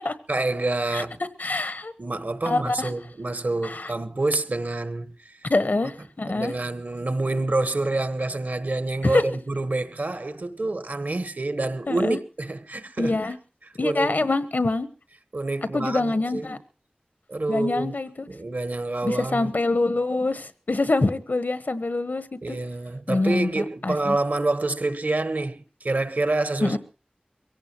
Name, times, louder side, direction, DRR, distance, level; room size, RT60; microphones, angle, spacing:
voice 1, 0.3-1.2 2.0-5.4 6.3-13.2 13.8-14.1 15.3-16.5 17.3-17.9 18.3-19.5 22.4-26.8, right 2 dB, 75° right, 1.3 m, -27 dB
voice 2, 1.4-1.9 2.4-2.9 3.6-3.9 5.4-6.5 9.0-9.2 11.9-12.2 13.0-13.4 13.8-14.9 15.7-16.6 17.5-18.3 19.0-22.6 23.1-24.2 26.6-26.8, left 2 dB, 80° left, 1.2 m, -25 dB
23.0 x 17.0 x 3.0 m
wide cardioid pair, 40°, 3 cm